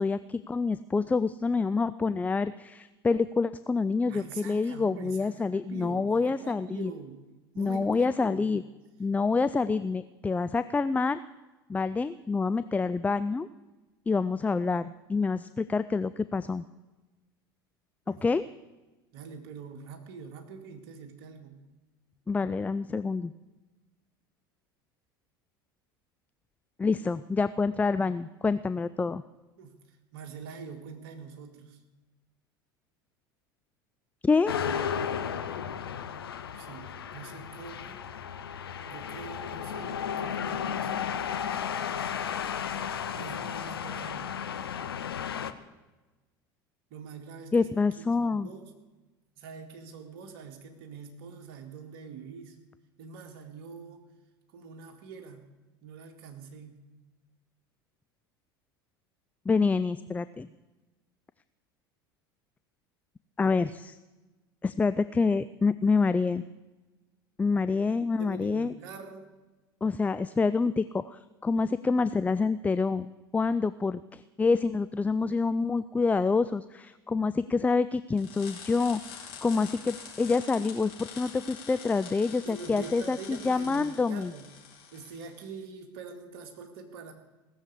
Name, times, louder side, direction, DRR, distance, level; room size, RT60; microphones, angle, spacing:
voice 1, 0.0-6.9 7.6-8.6 9.0-11.2 11.7-13.5 14.1-16.6 18.2-18.5 22.3-23.3 26.8-29.2 34.2-34.5 47.5-48.5 59.5-60.5 63.4-64.0 64.6-66.4 67.4-68.7 69.8-84.3, left 4 dB, 10° left, 14 dB, 0.4 m, -27 dB
voice 2, 4.1-7.2 7.5-8.5 18.1-18.2 19.1-21.6 29.6-31.8 36.6-38.0 38.9-40.9 43.1-44.3 46.9-48.7 49.4-52.6 53.0-54.0 54.5-55.5 55.8-56.8 68.2-69.3 82.4-84.5 84.9-87.1, right 5 dB, 60° right, 5 dB, 2.1 m, -44 dB
sound 1, 34.5-45.5, left 8 dB, 80° left, 0.8 m, -34 dB
sound 2, 78.2-85.4, left 7 dB, 55° left, 4.2 m, -46 dB
17.5 x 7.4 x 8.3 m, 1.1 s
hypercardioid pair, 75°, 12 cm